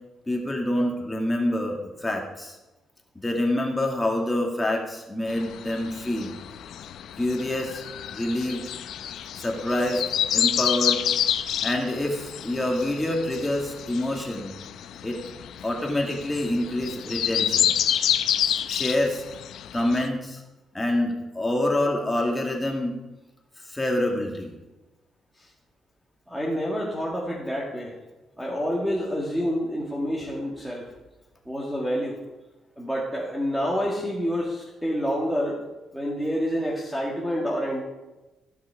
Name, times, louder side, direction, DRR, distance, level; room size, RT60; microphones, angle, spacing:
voice 1, 0.3-2.6 3.2-6.4 7.2-7.8 8.1-8.6 9.4-10.0 10.3-11.0 11.6-14.5 15.0-15.2 15.6-17.8 18.7-19.2 19.7-20.4 20.7-22.9 23.6-24.5, left 1 dB, 15° left, 1 dB, 2.1 m, -26 dB
sound 1, 5.3-20.1, left 10 dB, 75° left, 0.6 m, -29 dB
voice 2, 26.3-28.0 28.4-30.9 31.5-32.2 32.8-35.6 35.9-37.8, equal, 5° right, -4 dB, 2.1 m, -28 dB
15.0 x 6.3 x 4.8 m, 1.1 s
cardioid pair, 90°, 0 cm